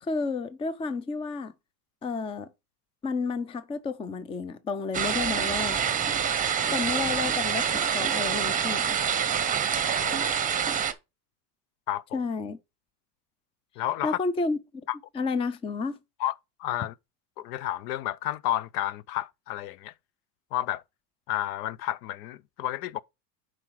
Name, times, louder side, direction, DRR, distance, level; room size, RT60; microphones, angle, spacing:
voice 1, 0.0-1.5 2.0-2.5 3.0-5.8 6.7-9.0 12.1-12.6 14.0-14.6 15.1-16.0, left 4 dB, 10° left, 0.4 m, -31 dB
sound 1, 4.9-10.9, right 7 dB, 15° right, 0.8 m, -26 dB
voice 2, 10.0-10.4 11.9-12.2 13.8-14.2 14.9-15.0 16.2-16.3 16.6-16.9 17.4-19.9 20.5-20.8 21.3-23.0, left 13 dB, 70° left, 0.7 m, -31 dB
7.6 x 4.9 x 4.6 m
supercardioid pair, 125°, 50 cm